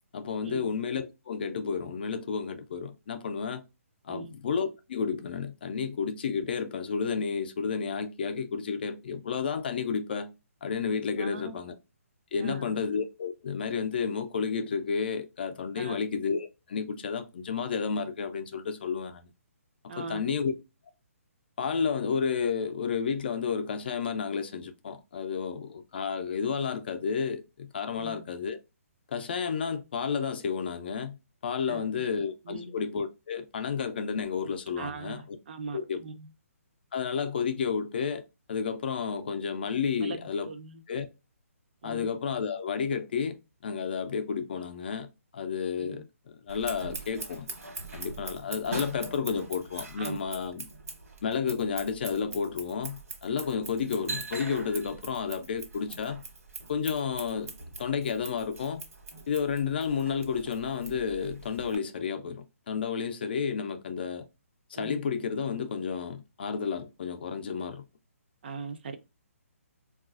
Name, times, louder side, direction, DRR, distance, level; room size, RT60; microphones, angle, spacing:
voice 1, 0.1-3.6 4.0-10.3 10.6-11.8 12.3-19.3 20.0-20.5 21.6-28.6 29.1-31.2 31.4-35.4 35.7-36.0 36.9-38.2 38.5-40.5 40.9-41.1 41.8-45.1 45.3-47.5 47.9-50.7 51.2-56.2 56.7-57.5 57.8-58.8 59.3-64.3 64.7-67.8, left 6 dB, 40° left, 0.4 m, -31 dB
voice 2, 11.2-11.6 12.4-12.8 15.8-16.0 19.9-20.3 28.0-28.2 31.7-32.1 32.5-32.7 34.8-36.3 40.0-40.2 40.5-40.8 41.8-42.1 45.8-46.0 50.0-50.2 64.8-65.0 68.4-69.0, right 4 dB, 45° right, 0.4 m, -40 dB
Scissors, 46.5-61.8, right 3 dB, 80° right, 1.2 m, -42 dB
3.8 x 2.3 x 2.4 m
hypercardioid pair, 165°, 8 cm